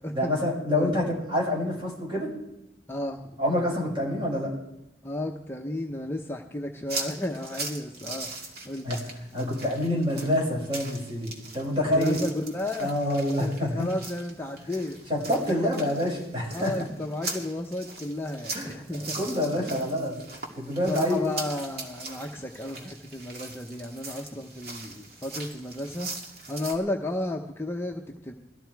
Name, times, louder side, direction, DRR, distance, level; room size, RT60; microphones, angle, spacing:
voice 1, 0.1-2.3 3.4-4.5 8.8-9.0 9.3-12.2 12.8-13.9 15.1-16.8 18.5-18.7 19.0-20.2 20.6-21.2, left 1 dB, 30° right, -3 dB, 5.7 m, -27 dB
voice 2, 2.9-3.2 5.0-8.3 8.6-8.9 11.8-12.9 13.4-15.0 15.5-15.7 16.5-19.2 19.6-19.7 20.9-26.1 26.5-28.3, left 1 dB, 15° left, 1 dB, 0.8 m, -33 dB
sound 1, 6.9-26.7, right 3 dB, 60° right, 2.4 m, -40 dB
20.0 x 13.5 x 4.6 m, 0.89 s
head